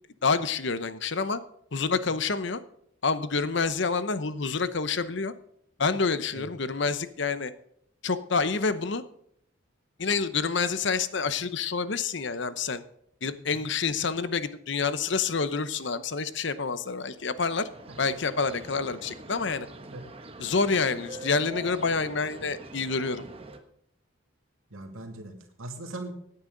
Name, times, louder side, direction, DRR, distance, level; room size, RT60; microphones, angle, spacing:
voice 1, 0.2-1.4 1.7-2.6 3.0-5.3 5.8-7.5 8.0-9.0 10.0-12.8 13.2-17.7 18.0-19.7 20.4-23.2, left 4 dB, 60° left, 13 dB, 0.8 m, -28 dB
sound 1, 17.1-23.6, right 2 dB, 30° right, 1.2 m, -44 dB
voice 2, 24.7-26.1, right 2 dB, 90° right, 4 dB, 2.4 m, -40 dB
17.5 x 9.7 x 3.9 m, 0.71 s
head